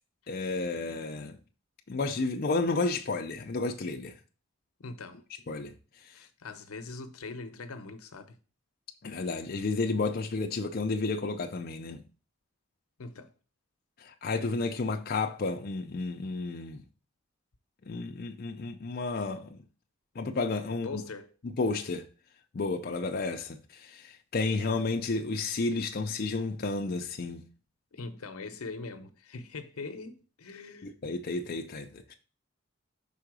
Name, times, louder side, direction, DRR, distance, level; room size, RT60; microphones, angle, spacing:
voice 1, 0.3-1.4 1.9-4.2 5.5-5.7 6.0-6.1 9.0-12.0 14.0-16.8 17.9-19.6 20.2-21.0 21.4-22.0 22.5-27.4 30.8-32.1, left 3 dB, 45° left, 0.5 m, -32 dB
voice 2, 4.8-5.2 6.1-8.4 13.0-13.3 20.8-21.3 27.9-30.9, left 3 dB, 85° left, 0.7 m, -42 dB
5.6 x 3.8 x 4.7 m
head